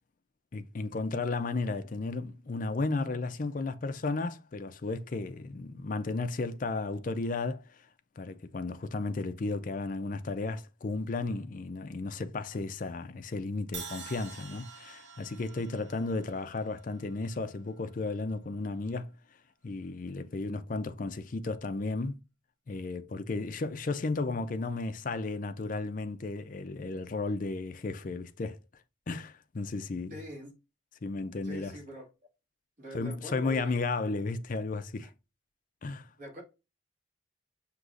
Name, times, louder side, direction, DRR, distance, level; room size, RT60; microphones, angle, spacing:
voice 1, 0.5-7.6 8.2-19.1 19.6-22.2 22.7-28.6 29.1-30.2 31.0-31.8 32.9-35.1 35.8-36.1, left 3 dB, 40° left, 0.5 m, -34 dB
Crash cymbal, 13.7-17.8, right 5 dB, 65° right, 1.1 m, -47 dB
voice 2, 30.1-30.5 31.1-32.1 32.8-33.8 35.0-35.1 36.2-36.4, equal, 45° right, 2.4 m, -44 dB
6.1 x 3.0 x 2.5 m
head